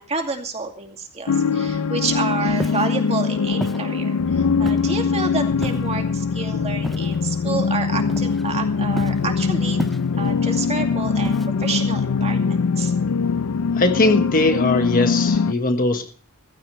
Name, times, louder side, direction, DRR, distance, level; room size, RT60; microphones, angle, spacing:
voice 1, 0.0-9.8 10.1-12.9, right 4 dB, 30° right, 3 dB, 2.3 m, -29 dB
sound 1, 1.3-15.5, left 5 dB, 75° left, 0.5 m, -22 dB
Walk footsteps, 2.5-2.9 3.6-3.8 4.7-5.0 5.6-6.0 6.8-7.2 8.1-8.6 9.0-9.3 9.8-10.3 11.2-11.7, equal, ahead, 0.5 m, -31 dB
voice 2, 13.7-16.1, left 2 dB, 40° left, 7 dB, 1.4 m, -20 dB
16.0 x 15.5 x 3.3 m, 0.42 s
head